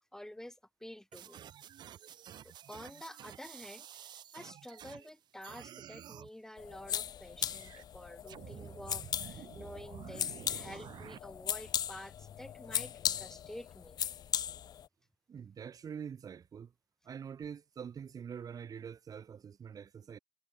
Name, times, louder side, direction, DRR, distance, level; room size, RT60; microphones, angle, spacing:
voice 1, 0.1-1.5 2.4-14.0, left 1 dB, 5° left, 6.9 m, -50 dB
sound 1, 1.1-5.1 5.4-6.3 7.4-7.8 8.3-11.2, right 10 dB, 65° right, 7.6 m, -50 dB
sound 2, 6.6-14.9, left 10 dB, 55° left, 0.6 m, -38 dB
voice 2, 15.3-16.7 17.0-20.2, right 7 dB, 50° right, 2.4 m, -45 dB
supercardioid pair, 65°, 8 cm